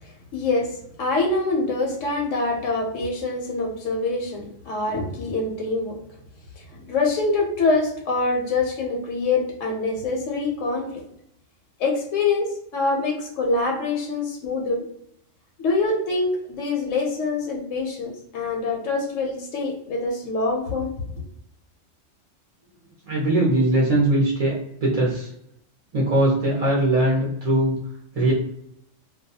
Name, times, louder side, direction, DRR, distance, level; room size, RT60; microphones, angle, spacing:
voice 1, 0.0-6.0 6.6-11.0 11.8-14.9 15.6-20.9, left 3 dB, 80° left, 1 dB, 1.0 m, -25 dB
voice 2, 23.1-25.3 25.9-27.8 28.1-28.3, right 1 dB, 50° right, -5 dB, 0.4 m, -21 dB
2.3 x 2.2 x 2.6 m, 0.74 s
omnidirectional pair, 1.3 m